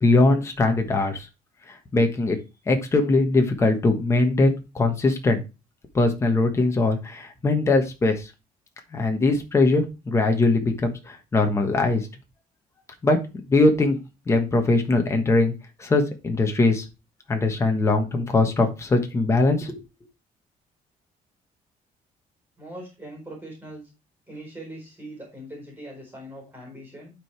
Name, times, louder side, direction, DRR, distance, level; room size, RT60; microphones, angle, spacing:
voice 1, 0.0-1.3 1.9-2.4 2.7-5.4 5.9-8.3 8.9-12.1 13.0-13.2 13.5-14.0 14.3-15.5 15.8-16.8 17.3-19.8, left 2 dB, 20° left, 4 dB, 1.3 m, -21 dB
voice 2, 22.6-23.9 24.3-27.1, right 1 dB, 15° right, -2 dB, 4.2 m, -41 dB
11.5 x 4.8 x 3.4 m, 0.28 s
cardioid pair, 170°, 15 cm